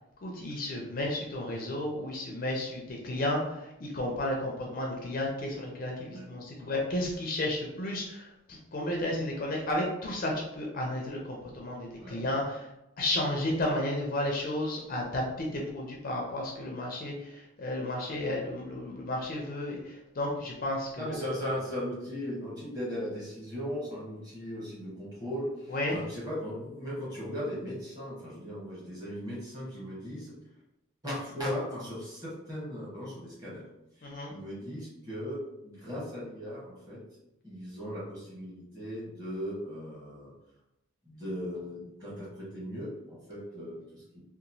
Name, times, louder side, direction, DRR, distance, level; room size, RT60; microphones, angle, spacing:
voice 1, 0.2-12.7 13.0-21.1 25.7-26.0 34.0-34.3, left 1 dB, 40° left, -1 dB, 0.4 m, -33 dB
voice 2, 20.9-30.3 31.0-33.7 34.0-35.4 35.6-37.0 37.4-40.3 41.0-44.2, equal, 15° right, -6 dB, 0.9 m, -38 dB
2.9 x 2.3 x 2.6 m, 0.88 s
head